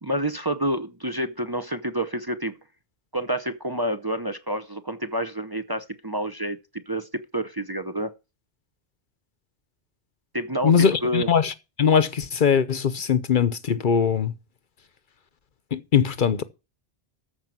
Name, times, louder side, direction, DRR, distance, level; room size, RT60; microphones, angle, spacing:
voice 1, 0.0-2.6 3.1-6.6 6.9-7.1 7.3-8.1 10.3-11.3, right 1 dB, 25° right, 0.7 m, -28 dB
voice 2, 10.6-11.5 11.8-14.3 15.7-16.4, left 7 dB, 55° left, 0.9 m, -21 dB
13.5 x 5.1 x 7.5 m
omnidirectional pair, 1.0 m